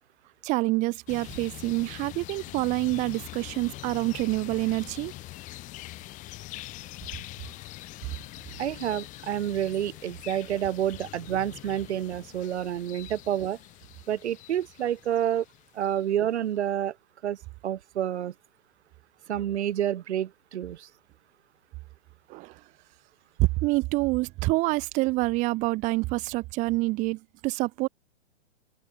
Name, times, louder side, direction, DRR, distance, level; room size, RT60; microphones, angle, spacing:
voice 1, 0.4-5.1 22.3-22.6 23.4-27.9, right 22 dB, 20° right, 0.8 m, -27 dB
sound 1, 1.1-16.1, left 18 dB, 20° left, 1.1 m, -44 dB
voice 2, 8.6-13.6 14.1-15.4 15.7-16.9 17.2-17.4 17.6-18.3 19.3-20.9, right 10 dB, 70° right, 1.3 m, -29 dB
open air
hypercardioid pair, 140°, 35 cm